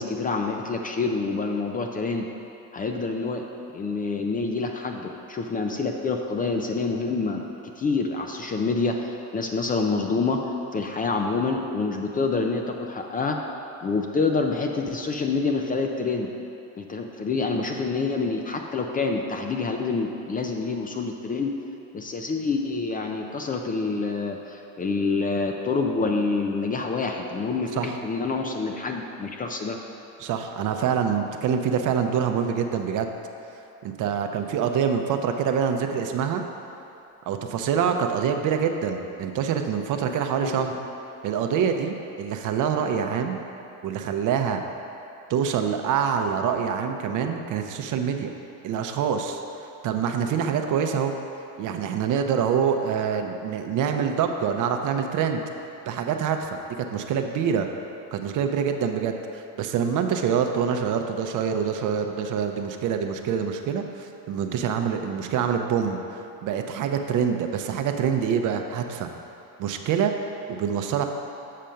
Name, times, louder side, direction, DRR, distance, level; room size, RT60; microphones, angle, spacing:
voice 1, 0.0-2.3 2.7-3.4 3.7-7.4 7.8-13.4 13.8-16.3 16.8-21.5 21.9-29.8 40.4-40.7, left 4 dB, 25° left, 3 dB, 0.4 m, -27 dB
voice 2, 30.2-33.1 33.8-36.4 37.3-40.8 41.2-43.4 43.8-44.6 45.3-48.3 48.6-49.4 49.8-51.1 51.6-55.4 55.9-57.7 58.1-69.1 69.6-70.1 70.5-71.0, right 7 dB, 55° right, 5 dB, 0.7 m, -25 dB
7.5 x 5.1 x 5.6 m, 2.8 s
cardioid pair, 130°, 37 cm